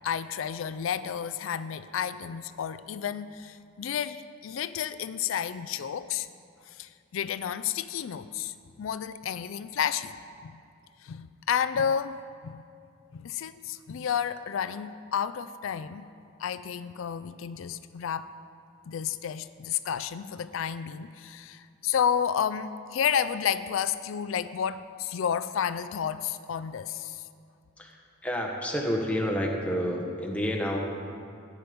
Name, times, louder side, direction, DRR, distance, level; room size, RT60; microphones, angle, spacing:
voice 1, 0.0-6.3 6.7-10.1 10.4-10.5 11.0-12.2 12.4-12.6 13.1-16.0 16.4-18.3 18.9-27.2, left 8 dB, 85° left, 13 dB, 0.4 m, -31 dB
voice 2, 27.8-30.8, equal, 5° left, 0 dB, 1.3 m, -29 dB
15.0 x 9.4 x 5.2 m, 2.4 s
head